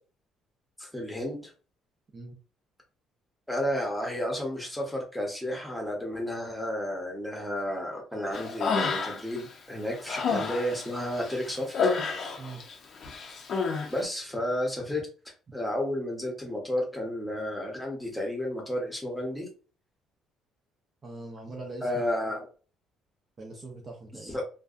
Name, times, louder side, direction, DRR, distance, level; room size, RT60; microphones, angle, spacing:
voice 1, 0.8-1.5 3.5-11.9 13.9-15.1 15.5-19.5 21.8-22.5 24.2-24.4, left 1 dB, 5° left, 0 dB, 0.9 m, -32 dB
Human voice, 8.3-9.4 9.8-12.7 13.0-13.9, left 5 dB, 50° left, 0.6 m, -29 dB
voice 2, 21.0-21.9 23.4-24.4, right 2 dB, 30° right, 1 dB, 0.6 m, -42 dB
2.5 x 2.2 x 2.4 m, 0.37 s
cardioid pair, 130°, 0 cm